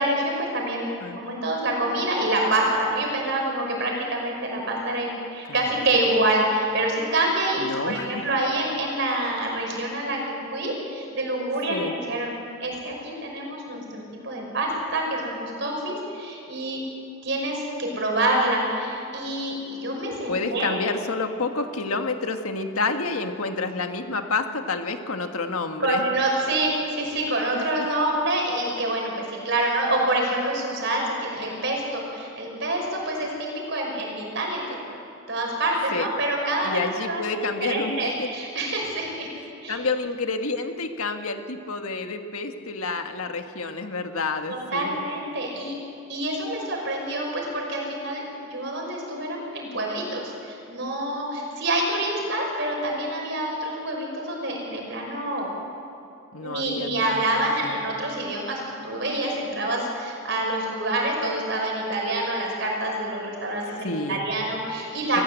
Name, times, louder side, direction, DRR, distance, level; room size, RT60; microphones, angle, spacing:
voice 1, 0.0-12.3 12.6-16.8 17.2-20.8 25.8-34.6 35.3-39.3 39.6-39.8 44.5-45.7 46.1-48.2 48.5-55.5 56.4-65.2, right 1 dB, 55° right, 0 dB, 5.7 m, -27 dB
voice 2, 5.5-5.9 7.6-8.3 11.7-11.9 20.3-26.1 27.5-27.9 35.9-36.1 36.6-38.3 39.7-45.0 56.3-57.8 63.8-64.3 65.1-65.2, left 3 dB, 85° left, 6 dB, 1.6 m, -29 dB
24.5 x 15.5 x 8.3 m, 2.7 s
head